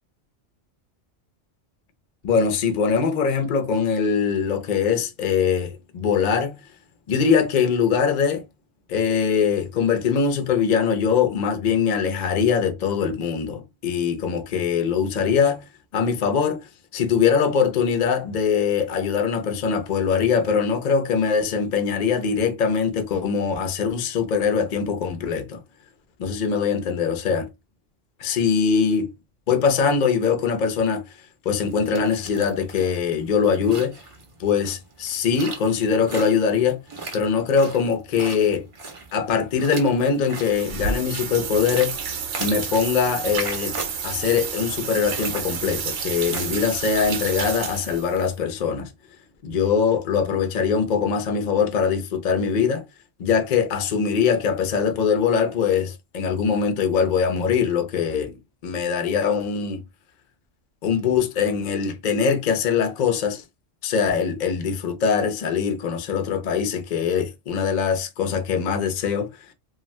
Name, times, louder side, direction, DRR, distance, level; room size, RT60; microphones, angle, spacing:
voice 1, 2.2-6.6 7.1-8.5 8.9-15.7 15.9-16.7 16.9-25.6 26.2-27.5 28.2-29.1 29.5-31.0 31.4-34.0 34.4-36.8 37.1-38.7 39.1-42.0 42.4-43.7 44.0-48.9 49.4-52.9 53.2-59.8 60.8-63.4 63.8-69.3, left 6 dB, 50° left, 0.6 m, -22 dB
sound 1, 31.5-47.8, right 3 dB, 40° right, 0.5 m, -38 dB
sound 2, 40.4-48.3, right 6 dB, 70° right, 0.9 m, -30 dB
2.5 x 2.3 x 3.1 m
omnidirectional pair, 1.3 m